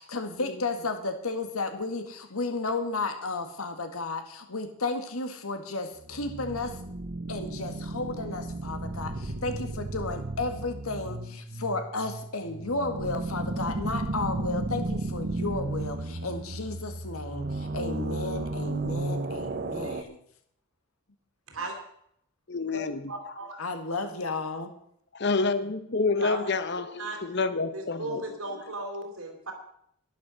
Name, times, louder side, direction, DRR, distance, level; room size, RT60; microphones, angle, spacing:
voice 1, 0.1-6.8 7.3-20.2 23.6-24.7, left 3 dB, 85° left, 7 dB, 1.8 m, -33 dB
sound 1, 6.0-20.0, right 2 dB, 45° right, 0.8 m, -34 dB
voice 2, 22.5-23.1 25.2-28.2, left 4 dB, 50° left, 11 dB, 1.0 m, -28 dB
voice 3, 23.1-23.5 26.2-26.5 27.0-27.2 27.7-29.5, right 2 dB, 80° right, 3 dB, 3.6 m, -36 dB
11.5 x 11.0 x 6.4 m, 0.69 s
head